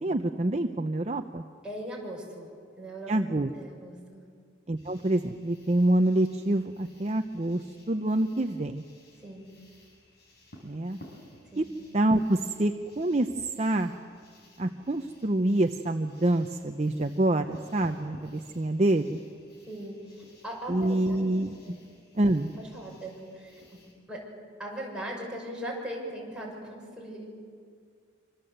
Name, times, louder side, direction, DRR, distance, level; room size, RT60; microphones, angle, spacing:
voice 1, 0.0-1.4 3.1-3.5 4.7-8.8 10.6-11.0 11.6-11.7 11.9-13.9 14.6-19.2 20.7-21.8 22.2-22.5, right 1 dB, 35° right, 6 dB, 0.7 m, -26 dB
voice 2, 1.6-2.5 2.8-3.1 3.6-4.2 9.2-9.5 11.5-11.7 19.7-21.3 21.6-21.8 22.5-23.6 24.1-24.2 24.6-27.3, right 1 dB, 5° right, -4 dB, 6.5 m, -39 dB
sound 1, 4.8-23.9, left 1 dB, 55° left, 6.0 m, -55 dB
26.0 x 25.5 x 7.9 m, 2.2 s
head